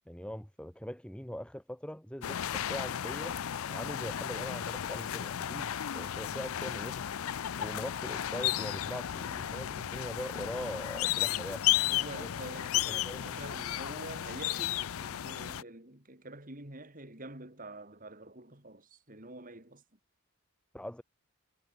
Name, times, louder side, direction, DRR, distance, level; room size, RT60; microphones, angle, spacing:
voice 1, 0.1-3.4 3.7-7.0 7.6-11.7 12.2-12.3 12.8-13.4 20.7-21.0, equal, 5° left, 1.5 m, -42 dB
sound 1, 2.2-15.6, left 11 dB, 75° left, 0.5 m, -34 dB
voice 2, 11.9-19.8, right 2 dB, 40° right, 3.6 m, -47 dB
head